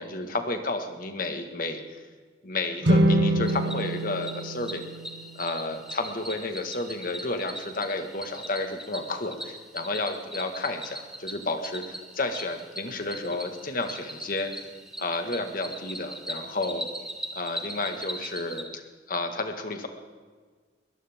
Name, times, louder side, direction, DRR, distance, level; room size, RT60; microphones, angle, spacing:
voice 1, 0.0-1.8 2.4-4.8 5.4-14.5 15.0-16.9 17.4-18.8 19.1-19.9, left 2 dB, 50° left, 6 dB, 1.7 m, -31 dB
sound 1, 2.8-6.1, right 1 dB, 80° right, 1.8 m, -26 dB
Cricket, 3.4-18.6, right 1 dB, 5° right, 1.5 m, -40 dB
22.0 x 17.5 x 3.6 m, 1.5 s
head